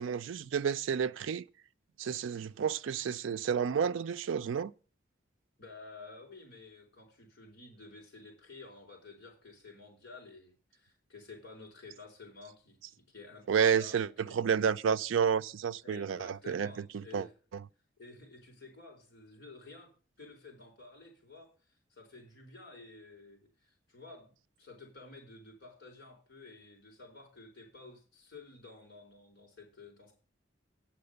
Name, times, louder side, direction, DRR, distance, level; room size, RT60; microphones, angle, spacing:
voice 1, 0.0-1.4 2.0-4.7 13.5-17.3 17.5-17.6, right 7 dB, 80° right, 0.4 m, -30 dB
voice 2, 5.6-14.4 15.8-17.3 18.0-19.9 20.2-21.5 21.9-30.1, left 3 dB, 55° left, 4.6 m, -52 dB
8.7 x 5.8 x 6.7 m
head